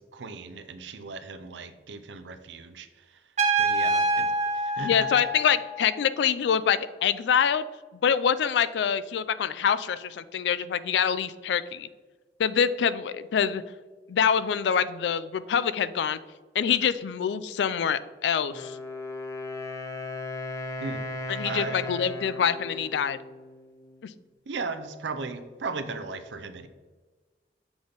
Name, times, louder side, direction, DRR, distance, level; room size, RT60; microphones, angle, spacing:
voice 1, 0.0-3.2 3.6-5.4 20.8-21.1 21.4-21.9 24.5-26.7, right 4 dB, 85° right, 10 dB, 0.5 m, -37 dB
Trumpet, 3.4-6.0, right 2 dB, 40° right, 0.5 m, -26 dB
voice 2, 4.8-7.6 8.0-11.9 12.4-13.6 14.1-16.2 16.6-18.8 21.3-23.2 24.0-24.1, left 7 dB, 75° left, 15 dB, 0.3 m, -25 dB
Wind instrument woodwind instrument, 18.4-24.2, left 2 dB, 20° left, 0.5 m, -37 dB
7.0 x 3.9 x 3.4 m, 1.3 s
head